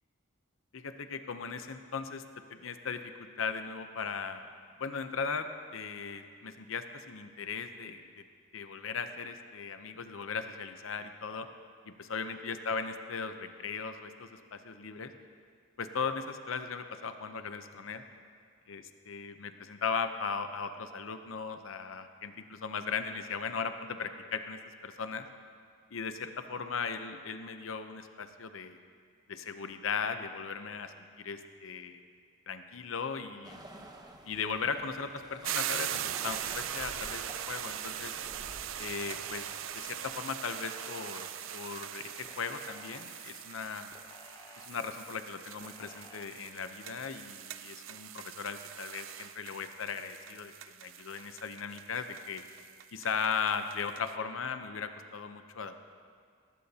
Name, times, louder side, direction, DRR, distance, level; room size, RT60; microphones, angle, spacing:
voice 1, 0.7-2.2 2.5-4.5 4.8-8.2 8.5-11.5 11.9-15.1 15.8-18.0 18.7-25.3 25.9-28.8 29.3-32.0 32.5-33.6 34.2-38.2 38.8-39.5 39.7-41.3 41.5-43.9 44.6-50.5 50.8-52.4 52.9-55.8, left 5 dB, 80° left, 8 dB, 0.7 m, -37 dB
sound 1, 33.4-40.2, right 1 dB, 20° right, 0.9 m, -50 dB
sound 2, 35.4-54.1, right 11 dB, 75° right, 0.5 m, -41 dB
sound 3, 35.8-36.4 37.0-38.3 38.8-40.0 40.5-41.8 42.2-43.4 43.9-45.1 45.6-46.2, left 3 dB, 20° left, 0.8 m, -54 dB
18.5 x 15.5 x 2.8 m, 2.1 s
head